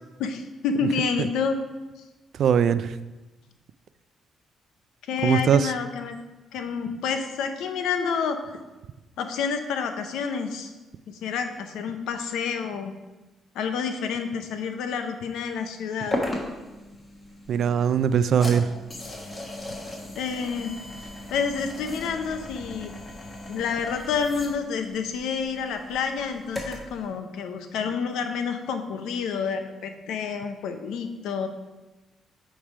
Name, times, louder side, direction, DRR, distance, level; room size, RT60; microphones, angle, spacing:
voice 1, 0.2-1.6 5.1-6.2 6.5-8.4 9.2-10.7 11.1-12.9 13.5-16.2 20.2-20.8 21.3-22.9 23.5-31.5, left 6 dB, 85° left, 7 dB, 0.6 m, -29 dB
voice 2, 2.3-3.0 5.2-5.7 17.5-18.7, right 8 dB, 65° right, 14 dB, 0.3 m, -21 dB
sound 1, 16.1-27.0, left 1 dB, 25° left, 1.6 m, -37 dB
8.8 x 3.3 x 4.9 m, 1.1 s
cardioid pair, 90°, 0 cm